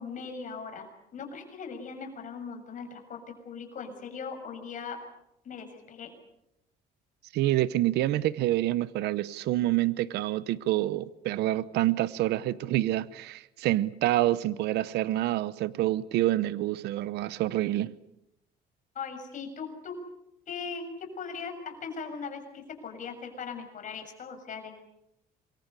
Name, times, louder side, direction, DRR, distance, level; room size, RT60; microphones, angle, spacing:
voice 1, 0.0-5.0 5.4-6.1 18.9-19.9 20.5-20.8 21.2-24.8, left 5 dB, 50° left, 5 dB, 6.8 m, -39 dB
voice 2, 7.3-17.9, right 15 dB, 80° right, 17 dB, 0.9 m, -27 dB
27.0 x 23.0 x 6.9 m, 0.86 s
cardioid pair, 110°, 17 cm